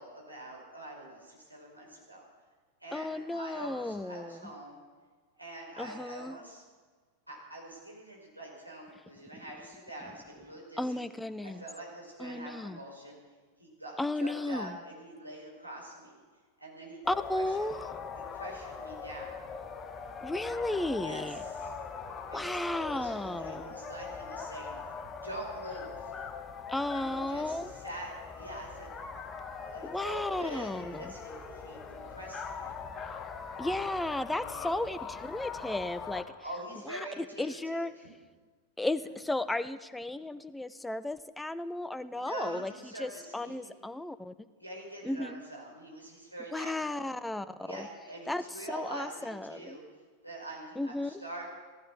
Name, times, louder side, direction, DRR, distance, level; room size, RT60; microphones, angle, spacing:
voice 1, 0.0-2.2 2.8-4.8 5.4-6.6 7.3-11.0 11.4-13.2 13.6-16.2 16.6-17.0 17.3-17.7 18.2-19.4 21.0-21.7 22.3-24.8 25.2-26.1 26.9-28.9 29.6-32.8 34.4-34.6 36.4-38.1 42.1-43.7 44.6-47.1 47.6-49.8 50.2-51.5, right 1 dB, 90° right, -3 dB, 5.2 m, -45 dB
voice 2, 2.9-4.5 5.8-6.4 9.3-9.4 10.8-11.6 12.2-12.8 14.0-14.8 17.1-17.8 20.2-21.4 22.3-23.7 26.7-27.7 29.8-31.1 33.6-36.2 36.8-37.9 38.8-44.3 45.0-45.4 46.5-47.9 48.3-49.8 50.8-51.1, left 2 dB, 5° left, 14 dB, 0.6 m, -34 dB
sound 1, 17.0-36.2, left 5 dB, 20° left, 1.4 m, -41 dB
16.0 x 14.5 x 6.1 m, 1.5 s
figure-of-eight pair, 90°, 0 cm